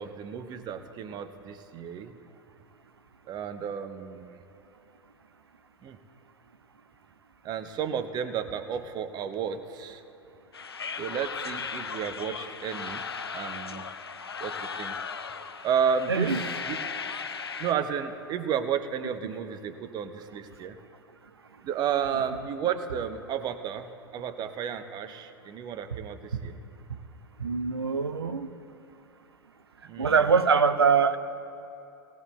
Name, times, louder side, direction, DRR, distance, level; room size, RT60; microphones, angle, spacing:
voice 1, 0.0-2.2 3.3-4.4 5.8-6.0 7.4-10.0 11.0-13.0 13.3-13.8 14.4-15.0 15.6-16.8 17.6-20.8 21.6-26.5 29.8-30.2, right 8 dB, 35° right, 9 dB, 0.8 m, -32 dB
sound 1, 10.5-17.7, left 5 dB, 80° left, 0.6 m, -36 dB
voice 2, 16.1-16.4 19.2-19.3 27.4-28.5 30.0-31.2, right 5 dB, 80° right, 11 dB, 0.6 m, -23 dB
18.0 x 18.0 x 2.3 m, 2.7 s
figure-of-eight pair, 85°, 13 cm